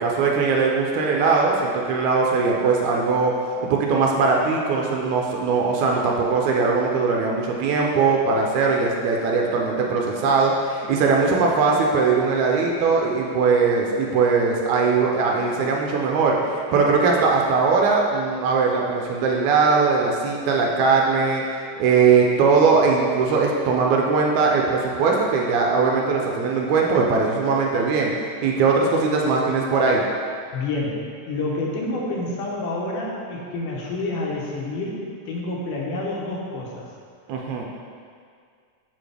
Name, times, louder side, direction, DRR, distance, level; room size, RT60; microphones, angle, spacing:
voice 1, 0.0-30.0 37.3-37.6, right 4 dB, 75° right, -1 dB, 1.9 m, -20 dB
voice 2, 30.5-35.0 35.3-36.9, left 2 dB, 80° left, -3 dB, 2.6 m, -28 dB
6.9 x 6.1 x 3.4 m, 2.2 s
omnidirectional pair, 3.6 m